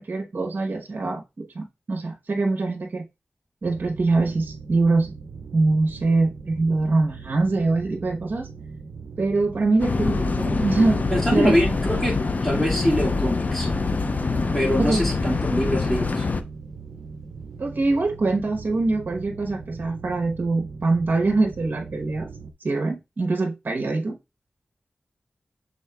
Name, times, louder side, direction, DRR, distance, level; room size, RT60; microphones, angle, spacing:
voice 1, 0.0-3.0 3.6-5.1 5.5-8.5 9.2-11.5 11.9-12.1 14.8-15.0 17.6-22.3 22.6-24.2, right 3 dB, 55° right, 0.9 m, -23 dB
sound 1, 3.6-22.5, right 5 dB, 80° right, 0.5 m, -40 dB
sound 2, 9.8-16.4, left 3 dB, 45° left, 0.4 m, -25 dB
voice 2, 11.1-12.1 12.4-13.7 14.5-16.2, equal, 10° left, 1.9 m, -24 dB
6.3 x 3.5 x 2.2 m
wide cardioid pair, 90°, 4 cm